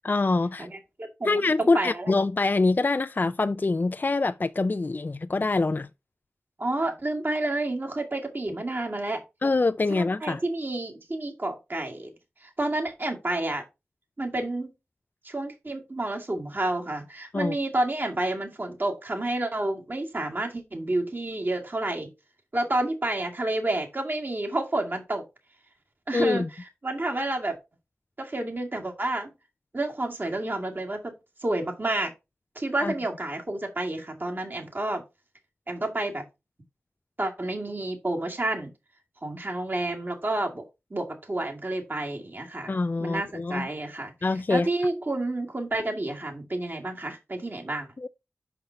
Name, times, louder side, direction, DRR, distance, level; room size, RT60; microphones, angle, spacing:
voice 1, 0.1-0.7 1.2-5.9 9.4-10.4 17.3-17.6 26.1-26.5 32.8-32.9 42.7-43.7 44.2-44.7 48.0-48.1, left 3 dB, 40° left, 0.4 m, -25 dB
voice 2, 0.6-2.1 6.6-9.2 9.9-12.1 12.4-13.6 14.2-14.7 15.2-22.1 22.5-25.2 26.1-27.6 28.2-29.3 29.7-31.1 31.4-32.1 32.6-35.0 35.7-36.2 37.2-38.7 39.2-40.6 40.9-42.7 43.0-44.1 44.5-47.9, right 2 dB, 45° right, 2.2 m, -30 dB
5.7 x 5.5 x 4.4 m
cardioid pair, 50°, 5 cm